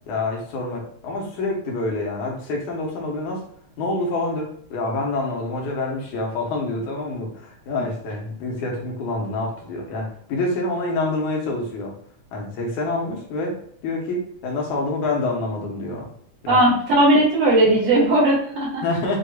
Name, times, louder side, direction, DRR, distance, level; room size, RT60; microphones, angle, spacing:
voice 1, 0.1-3.4 3.8-11.9 12.3-16.1 16.4-16.7 18.8-19.2, left 2 dB, 80° left, -2 dB, 2.5 m, -27 dB
voice 2, 16.5-18.8, right 1 dB, 65° right, -4 dB, 2.2 m, -17 dB
6.5 x 2.9 x 2.3 m, 0.63 s
omnidirectional pair, 3.4 m